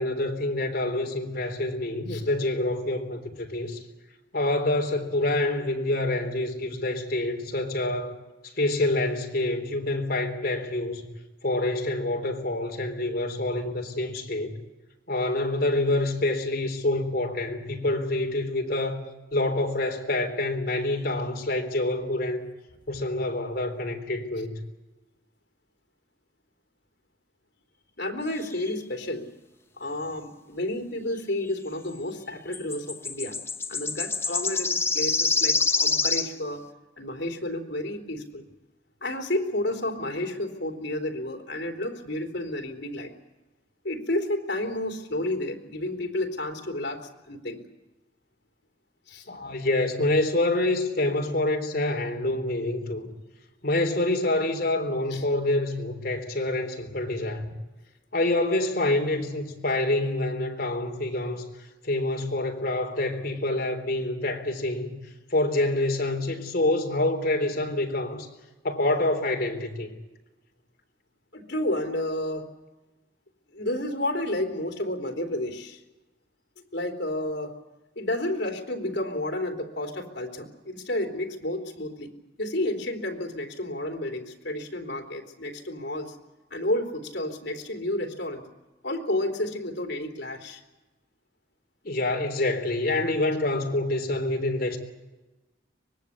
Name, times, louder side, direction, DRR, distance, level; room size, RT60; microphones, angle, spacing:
voice 1, 0.0-3.8 4.3-8.2 8.6-11.1 11.4-14.6 15.1-19.0 19.3-22.5 22.9-24.6 49.3-53.1 53.6-57.5 58.1-61.5 61.8-65.0 65.3-68.3 68.6-69.9 91.8-94.8, left 2 dB, 60° left, 3.7 m, -27 dB
voice 2, 28.0-29.3 29.8-33.4 33.7-36.6 37.0-38.4 39.0-43.1 43.8-47.6 49.1-49.3 55.1-55.2 71.3-72.4 73.5-75.8 76.7-77.5 78.0-82.1 82.4-86.2 86.5-88.4 88.8-90.6, left 1 dB, 80° left, 3.7 m, -31 dB
sound 1, 28.5-28.7 32.5-36.3, left 4 dB, 15° left, 0.8 m, -26 dB
24.5 x 20.5 x 8.4 m
head